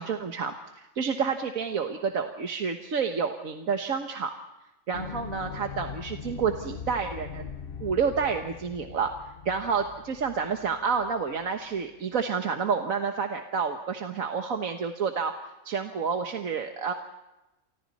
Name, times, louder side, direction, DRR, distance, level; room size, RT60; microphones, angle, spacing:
voice 1, 0.0-4.3 4.9-7.5 7.8-15.3 15.6-16.9, right 6 dB, 75° right, 5 dB, 1.7 m, -29 dB
sound 1, 4.9-11.4 11.8-11.9, left 7 dB, 45° left, 1.1 m, -41 dB
29.0 x 25.0 x 4.2 m, 0.97 s
omnidirectional pair, 1.4 m